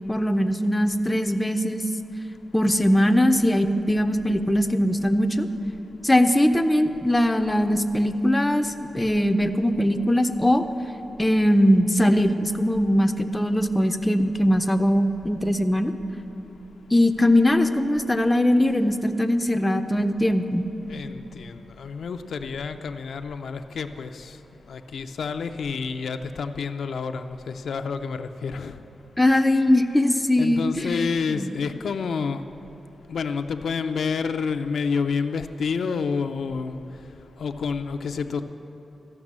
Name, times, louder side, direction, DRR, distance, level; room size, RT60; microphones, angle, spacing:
voice 1, 0.1-1.8 2.5-5.5 6.0-10.6 11.2-15.9 16.9-20.6 29.2-30.9 31.3-31.5, left 1 dB, 10° left, 7 dB, 0.4 m, -21 dB
voice 2, 20.9-24.4 24.7-28.8 30.4-32.4 33.1-36.8 37.4-38.4, left 5 dB, 70° left, 8 dB, 0.4 m, -29 dB
13.5 x 5.9 x 7.3 m, 3.0 s
wide cardioid pair, 130°, 0 cm